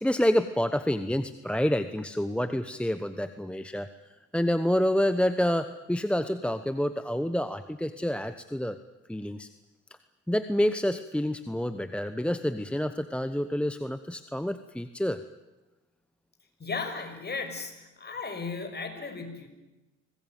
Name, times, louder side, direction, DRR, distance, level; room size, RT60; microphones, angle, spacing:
voice 1, 0.0-3.9 4.3-8.8 9.1-9.5 10.3-15.2, equal, 5° left, 10 dB, 1.1 m, -28 dB
voice 2, 16.6-19.5, left 4 dB, 35° left, 6 dB, 6.3 m, -35 dB
25.0 x 20.0 x 9.4 m, 1.1 s
cardioid pair, 90°, 30 cm